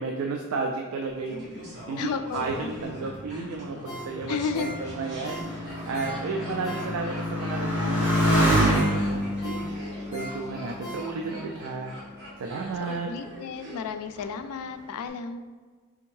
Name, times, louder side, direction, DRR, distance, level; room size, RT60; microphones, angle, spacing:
voice 1, 0.0-11.9 12.4-13.1, right 4 dB, 65° right, 2 dB, 0.3 m, -33 dB
Laughter, 1.3-14.3 14.5-14.6, equal, 50° right, 1.3 m, -43 dB
voice 2, 2.0-2.7 4.3-4.8 12.9-15.4, left 5 dB, 85° left, 10 dB, 0.3 m, -32 dB
Motorcycle, 2.5-11.5 12.2-12.8, equal, 10° right, 1.1 m, -28 dB
Ringtone, 3.8-7.3 7.7-11.5 11.9-12.0, right 1 dB, 35° left, 0.9 m, -41 dB
3.4 x 3.4 x 3.1 m, 1.5 s
head